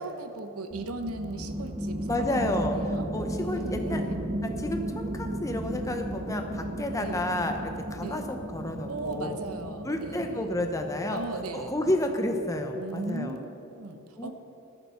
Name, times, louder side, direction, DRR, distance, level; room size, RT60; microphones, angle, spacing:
voice 1, 0.0-4.2 7.0-7.2 8.0-8.2 8.9-10.5 11.1-11.7 12.7-14.3, right 2 dB, 85° right, 7 dB, 1.1 m, -38 dB
sound 1, 0.7-12.8, right 1 dB, 25° right, 1.0 m, -35 dB
voice 2, 2.1-4.0 4.4-9.4 9.8-11.2 11.5-13.4 14.2-14.3, left 1 dB, 15° left, 4 dB, 0.8 m, -31 dB
20.5 x 7.3 x 5.8 m, 3.0 s
head